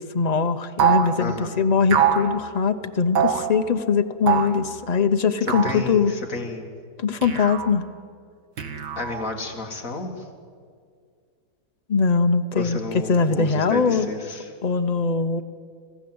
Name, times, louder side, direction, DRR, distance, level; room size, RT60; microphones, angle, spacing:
voice 1, 0.0-6.1 7.0-7.9 11.9-14.1 14.6-15.4, left 5 dB, 70° left, 8 dB, 0.3 m, -22 dB
sound 1, 0.8-1.1 1.9-2.3 3.1-3.5 4.3-4.6 5.5-5.8 7.2-7.7 8.6-9.3, right 8 dB, 75° right, 2.1 m, -22 dB
voice 2, 1.2-1.5 5.6-6.7 9.0-10.2 12.5-14.5, left 2 dB, 50° left, 3 dB, 2.4 m, -31 dB
26.0 x 15.5 x 7.8 m, 2.1 s
omnidirectional pair, 1.9 m